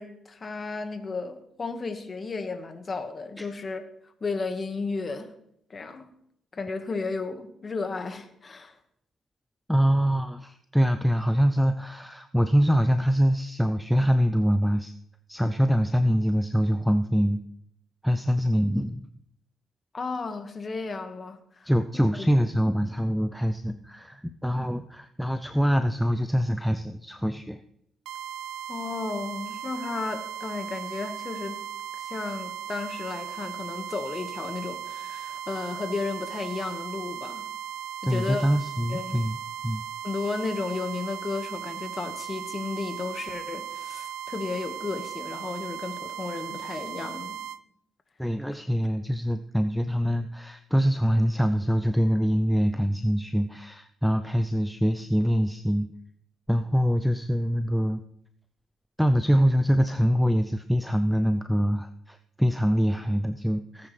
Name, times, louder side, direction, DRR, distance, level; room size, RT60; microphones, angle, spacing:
voice 1, 0.0-3.8 4.2-5.3 5.7-6.1 6.5-8.8 19.9-21.7 22.1-22.3 28.7-31.6 31.9-37.4 38.0-38.4 38.9-39.2 40.0-47.5, left 4 dB, 35° left, 6 dB, 1.7 m, -33 dB
voice 2, 9.7-14.9 15.3-17.4 18.0-19.0 21.6-27.6 38.0-39.4 39.6-39.8 48.2-55.9 56.5-58.0 59.0-63.9, equal, ahead, 8 dB, 0.6 m, -24 dB
sound 1, 28.1-47.6, right 10 dB, 85° right, 0.4 m, -37 dB
18.0 x 9.6 x 3.4 m, 0.73 s
cardioid pair, 90°, 0 cm